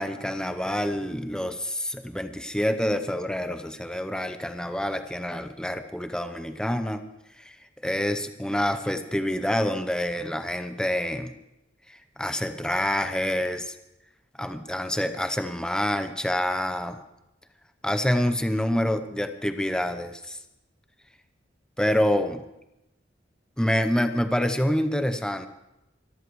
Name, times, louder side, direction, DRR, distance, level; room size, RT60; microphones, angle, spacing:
voice 1, 0.0-7.0 7.4-7.6 7.8-11.3 11.9-13.7 14.4-17.0 17.8-20.4 21.8-22.4 23.6-25.5, left 1 dB, 5° left, 8 dB, 0.8 m, -27 dB
24.0 x 13.5 x 3.2 m, 0.89 s
head